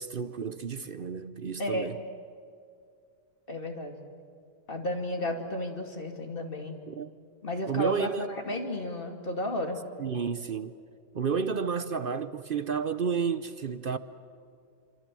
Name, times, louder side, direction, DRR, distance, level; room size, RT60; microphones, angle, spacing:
voice 1, 0.0-2.0 6.9-7.1 7.7-8.3 10.0-10.7 11.1-14.0, right 6 dB, 55° right, 0.6 m, -31 dB
voice 2, 1.6-1.9 3.5-4.0 4.7-6.8 7.4-9.8, left 1 dB, 30° left, 2.7 m, -33 dB
28.0 x 25.5 x 7.6 m
omnidirectional pair, 1.8 m